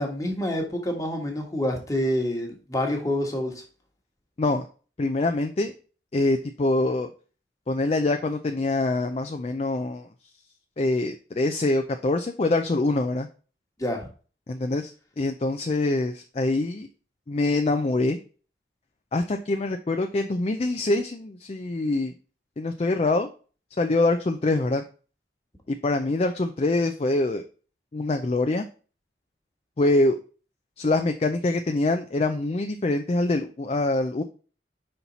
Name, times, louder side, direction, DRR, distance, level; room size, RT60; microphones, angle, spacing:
voice 1, 0.0-3.6 13.8-14.1, left 1 dB, 20° left, 1 dB, 1.4 m, -27 dB
voice 2, 5.0-5.7 6.1-7.1 7.7-10.1 10.8-13.3 14.5-14.9 15.2-16.9 17.3-18.2 19.1-22.1 22.6-23.3 23.8-24.8 25.7-27.4 27.9-28.7 29.8-30.2 30.8-34.2, left 2 dB, 35° left, 6 dB, 0.4 m, -24 dB
5.6 x 4.4 x 4.0 m, 0.37 s
head